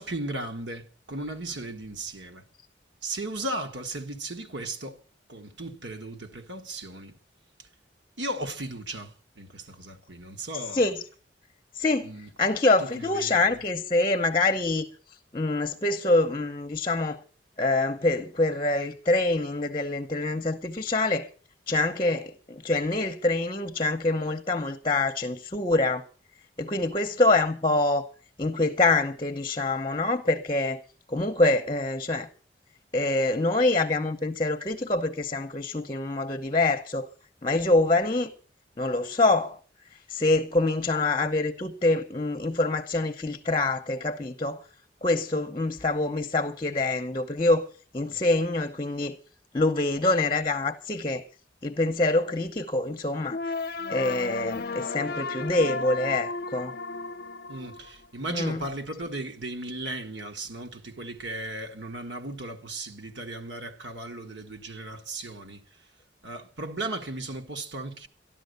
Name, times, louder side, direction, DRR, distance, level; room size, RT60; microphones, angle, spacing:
voice 1, 0.0-2.4 3.0-5.0 5.3-7.2 8.2-10.9 12.0-12.3 12.8-13.5 48.1-48.2 57.5-65.6 66.2-68.1, right 2 dB, 75° right, 1.7 m, -36 dB
voice 2, 11.7-12.1 12.4-14.9 15.3-17.2 17.6-21.3 21.7-26.0 26.6-28.1 28.4-30.8 31.1-32.3 32.9-37.1 37.4-38.3 38.8-39.6 40.1-44.6 45.0-47.7 47.9-49.2 49.5-51.2 51.6-53.4 53.9-56.7 58.3-58.6, left 2 dB, 25° left, 0.8 m, -25 dB
sound 1, 53.3-58.3, left 3 dB, 55° left, 0.6 m, -34 dB
14.0 x 11.5 x 6.7 m
head